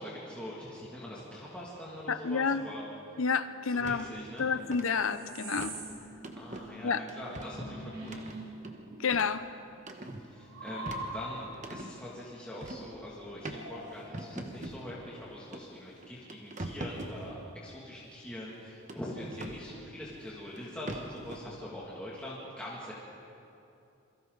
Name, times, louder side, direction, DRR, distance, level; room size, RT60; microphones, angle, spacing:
voice 1, 0.0-2.8 3.7-4.5 6.3-8.2 10.2-22.9, equal, 5° left, -7 dB, 2.5 m, -43 dB
voice 2, 2.1-2.7 3.2-4.1 4.4-5.7 6.8-7.0 9.0-9.4, left 5 dB, 75° left, 12 dB, 0.8 m, -29 dB
sound 1, 3.4-9.0 9.2-11.6 13.3-14.3, right 2 dB, 70° right, 4.1 m, -45 dB
sound 2, 3.8-4.0 4.4-4.8 5.6-5.8 6.2-6.7 7.1-7.6 8.1-9.4 9.8-10.3 10.7-11.9 12.6-12.9 13.4-13.6 14.1-14.8 15.5-15.6 16.0-17.2 18.9-19.6 20.6-20.7 20.9-21.4, right 1 dB, 35° right, 1.3 m, -42 dB
28.0 x 22.5 x 4.1 m, 2.7 s
head